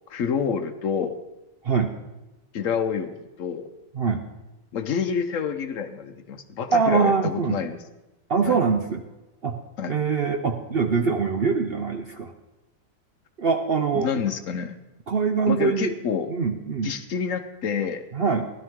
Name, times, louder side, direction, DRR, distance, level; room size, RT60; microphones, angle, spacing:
voice 1, 0.1-1.2 2.5-3.7 4.7-7.8 8.4-8.6 9.8-10.0 13.9-14.7 15.5-16.3 16.8-18.1, left 7 dB, 60° left, 8 dB, 1.0 m, -28 dB
voice 2, 6.7-7.6 8.3-9.0 9.4-9.6 9.9-12.3 13.4-14.1 15.1-15.9 16.3-16.9 18.1-18.5, right 5 dB, 55° right, 5 dB, 0.7 m, -23 dB
16.0 x 12.0 x 3.6 m, 1.1 s
omnidirectional pair, 1.6 m